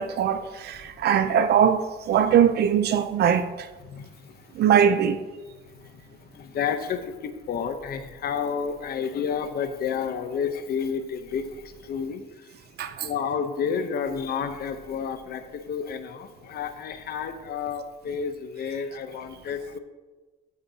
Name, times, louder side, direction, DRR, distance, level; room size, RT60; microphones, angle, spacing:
voice 1, 0.0-3.7 4.5-5.2 12.8-13.1, right 8 dB, 55° right, 0.6 m, -21 dB
voice 2, 3.8-4.5 5.7-12.5 13.0-19.8, left 6 dB, 50° left, 0.8 m, -31 dB
14.5 x 8.2 x 2.8 m
cardioid pair, 160°, 20 cm